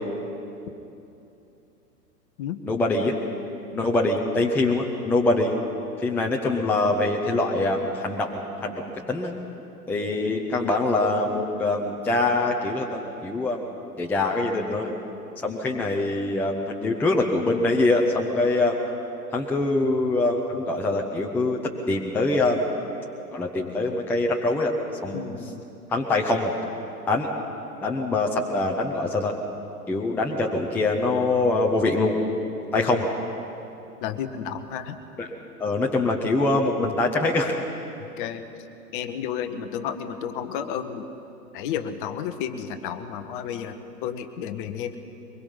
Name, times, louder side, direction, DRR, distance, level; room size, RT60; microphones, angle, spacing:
voice 1, 2.7-3.1 3.7-5.6 6.0-8.8 9.1-9.3 9.9-13.6 14.0-14.9 15.4-18.7 19.3-21.6 21.9-22.7 23.3-24.7 25.0-25.4 25.9-26.5 27.1-27.3 27.8-29.3 29.9-32.1 32.7-33.1 35.2-35.3 35.6-37.5, left 2 dB, 5° left, 0 dB, 0.7 m, -24 dB
voice 2, 25.1-25.6 32.8-32.9 34.0-35.0 38.2-38.4 38.9-41.1 41.5-45.0, left 8 dB, 30° left, 9 dB, 1.1 m, -32 dB
23.0 x 21.5 x 5.6 m, 2.8 s
figure-of-eight pair, 110°, 48 cm